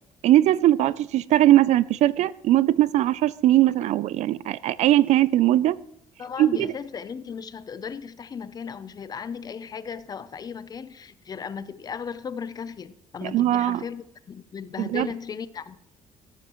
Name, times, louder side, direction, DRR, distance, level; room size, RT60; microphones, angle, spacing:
voice 1, 0.2-5.8 6.4-6.7 13.2-13.8 14.8-15.1, right 14 dB, 70° right, 0.4 m, -20 dB
voice 2, 6.2-15.8, left 6 dB, 30° left, 0.6 m, -36 dB
13.5 x 13.0 x 3.0 m
cardioid pair, 125°, 12 cm